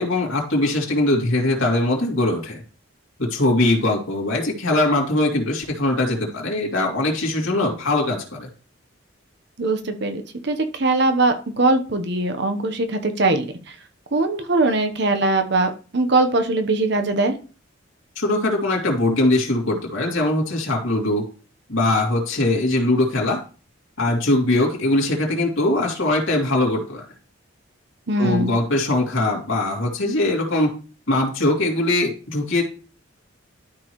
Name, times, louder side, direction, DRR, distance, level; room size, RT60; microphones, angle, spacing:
voice 1, 0.0-2.6 3.2-8.5 18.2-21.2 21.7-23.4 24.0-27.0 28.2-30.7 31.1-32.6, left 2 dB, 85° left, -2 dB, 2.5 m, -21 dB
voice 2, 9.6-13.5 14.1-17.3 28.1-28.5, right 2 dB, 60° right, 7 dB, 1.0 m, -21 dB
12.5 x 4.7 x 3.1 m, 0.36 s
head